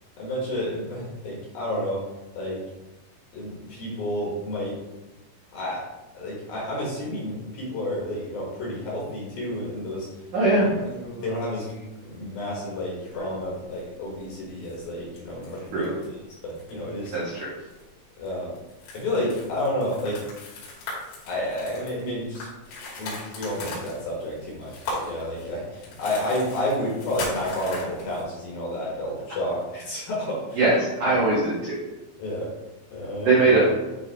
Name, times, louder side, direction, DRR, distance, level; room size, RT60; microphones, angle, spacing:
voice 1, 0.2-2.1 2.4-2.6 3.3-4.8 5.5-5.9 6.1-10.6 11.2-15.9 16.4-17.2 18.2-18.5 18.9-20.2 21.2-22.5 23.0-30.6 31.0-31.2 32.2-32.5 32.9-33.6, left 1 dB, 60° left, -5 dB, 2.6 m, -30 dB
voice 2, 10.3-10.7 15.7-15.9 17.1-17.5 30.5-31.8 33.2-33.7, right 3 dB, 85° right, -6 dB, 1.7 m, -21 dB
sound 1, 10.5-11.9 13.0-13.8 14.1-14.2 14.6-16.2 16.5-16.7 17.0-17.3 17.7-17.8 18.2-28.2, left 2 dB, 85° left, 5.3 m, -38 dB
11.0 x 3.7 x 3.5 m, 1.0 s
omnidirectional pair, 5.9 m